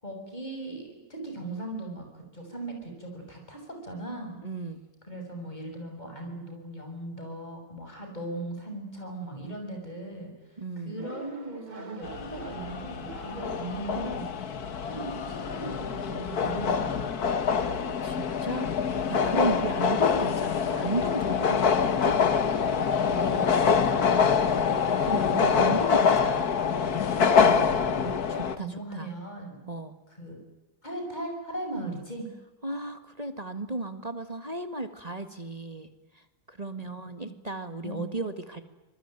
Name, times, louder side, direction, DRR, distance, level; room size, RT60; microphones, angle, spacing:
voice 1, 0.0-4.4 5.1-14.3 14.9-17.7 23.1-24.7 27.9-28.2 28.6-29.7 30.1-30.4 30.8-32.3 37.2-37.3 37.8-38.0, right 2 dB, 25° left, 3 dB, 7.3 m, -38 dB
voice 2, 4.4-4.8 10.6-11.0 18.0-22.2 23.3-23.6 25.0-26.6 27.3-27.8 28.3-29.1 29.7-29.9 32.6-38.6, right 2 dB, 25° right, 9 dB, 1.8 m, -35 dB
sound 1, 11.0-14.5, right 4 dB, 85° right, 3.5 m, -45 dB
sound 2, 12.0-28.6, left 6 dB, 65° left, 1.9 m, -25 dB
26.5 x 21.0 x 9.1 m, 1.1 s
omnidirectional pair, 1.8 m